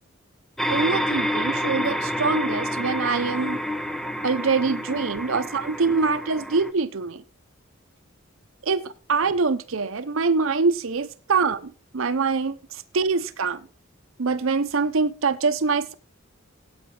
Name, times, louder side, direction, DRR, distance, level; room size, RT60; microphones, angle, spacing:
sound 1, 0.6-6.7, equal, ahead, 0.7 m, -28 dB
voice 1, 0.7-3.6 4.2-7.2 8.6-13.6 14.2-15.9, right 4 dB, 80° right, 0.7 m, -24 dB
13.5 x 8.7 x 3.8 m
head